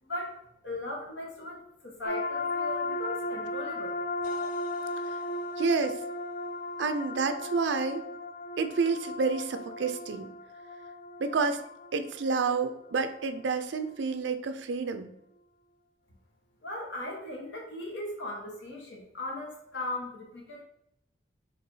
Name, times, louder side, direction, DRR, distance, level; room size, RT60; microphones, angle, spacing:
voice 1, 0.0-4.0 16.6-20.6, left 1 dB, 70° left, -1 dB, 1.1 m, -38 dB
sound 1, 2.0-13.4, left 2 dB, 45° left, 0.4 m, -36 dB
voice 2, 5.6-6.0 6.8-8.1 8.6-10.3 11.2-11.6 11.9-15.1, right 4 dB, 65° right, 8 dB, 0.4 m, -29 dB
4.4 x 3.3 x 2.7 m, 0.78 s
head